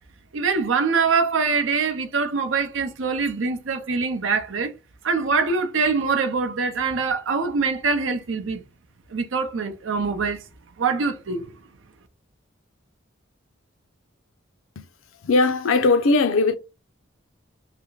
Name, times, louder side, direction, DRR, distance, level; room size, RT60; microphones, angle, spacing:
voice 1, 0.3-4.7 5.0-8.6 9.1-10.4 10.8-11.5, right 4 dB, 75° right, 0.6 m, -24 dB
voice 2, 15.2-16.6, left 3 dB, 85° left, 0.5 m, -19 dB
3.3 x 2.1 x 3.9 m
head